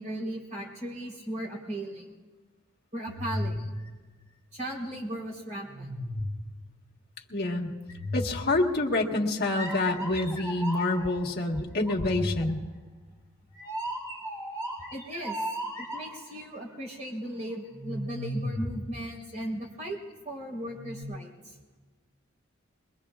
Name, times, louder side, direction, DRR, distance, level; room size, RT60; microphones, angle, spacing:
voice 1, 0.0-2.1 2.9-3.6 4.5-5.9 14.9-15.4 15.8-20.0 20.2-21.6, right 1 dB, 35° right, -1 dB, 3.9 m, -37 dB
sound 1, 3.1-4.9 5.7-6.6 7.9-8.9 9.5-11.2 11.9-16.4 17.7-19.5 20.6-21.0, equal, 15° right, 6.3 m, -36 dB
voice 2, 7.3-7.7 8.1-12.6, left 2 dB, 50° left, 0 dB, 1.6 m, -27 dB
22.5 x 22.5 x 2.4 m, 1.3 s
head